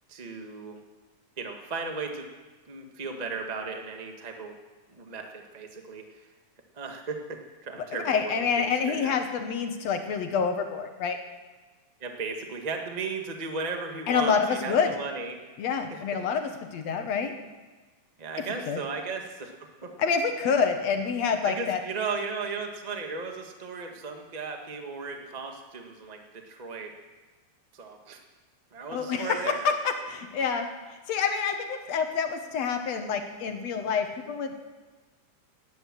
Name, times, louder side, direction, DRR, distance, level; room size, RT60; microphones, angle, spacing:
voice 1, 0.1-0.8 1.4-2.3 2.7-4.5 4.9-6.2 6.7-9.2 12.0-15.4 15.9-16.0 18.2-20.0 21.4-26.9 27.7-28.2 28.7-29.7, right 4 dB, 30° right, 3 dB, 0.7 m, -36 dB
voice 2, 7.9-11.2 14.1-14.9 15.6-17.3 18.7-18.8 20.0-21.8 28.9-30.7 31.1-34.6, left 6 dB, 60° left, 6 dB, 2.1 m, -27 dB
19.0 x 10.0 x 7.6 m, 1.3 s
omnidirectional pair, 3.8 m